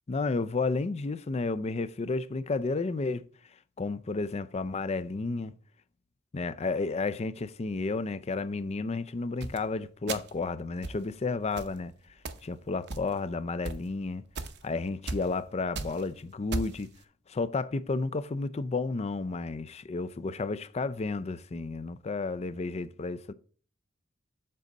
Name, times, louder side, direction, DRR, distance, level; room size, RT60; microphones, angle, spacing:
voice 1, 0.1-3.2 3.8-5.5 6.3-11.9 12.4-14.2 14.6-16.9 17.3-23.3, left 3 dB, 30° left, 0.4 m, -32 dB
sound 1, 9.4-9.6 10.1-10.4 10.8-11.0 11.6-11.8 12.3-12.5 12.9-13.3 13.6-13.8 14.4-14.6 15.1-15.3 15.6-16.0 16.5-16.8, right 3 dB, 55° right, 0.7 m, -35 dB
7.5 x 4.0 x 6.5 m
head